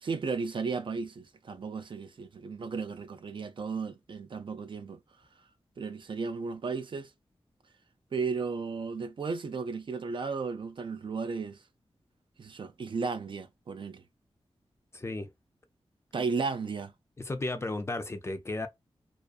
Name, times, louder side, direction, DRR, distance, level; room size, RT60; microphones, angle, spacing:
voice 1, 0.0-5.0 5.8-7.1 8.1-11.6 12.4-14.0 16.1-16.9, right 4 dB, 50° right, 0.3 m, -34 dB
voice 2, 14.9-15.3 17.2-18.7, left 2 dB, 25° left, 0.4 m, -34 dB
2.4 x 2.3 x 2.3 m
wide cardioid pair, 100°, 11 cm